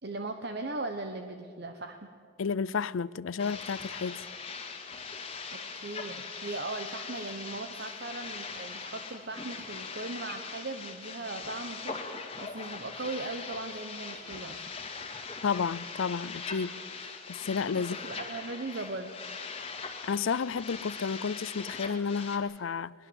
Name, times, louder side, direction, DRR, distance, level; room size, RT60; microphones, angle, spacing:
voice 1, 0.0-2.1 5.5-12.0 12.4-14.6 17.7-19.1, right 2 dB, 50° right, 1.1 m, -38 dB
voice 2, 2.4-4.2 15.4-16.7 17.3-18.0 20.0-22.9, left 5 dB, 75° left, 0.5 m, -31 dB
sound 1, 3.4-22.4, left 5 dB, 30° left, 2.1 m, -41 dB
21.5 x 21.0 x 8.0 m
head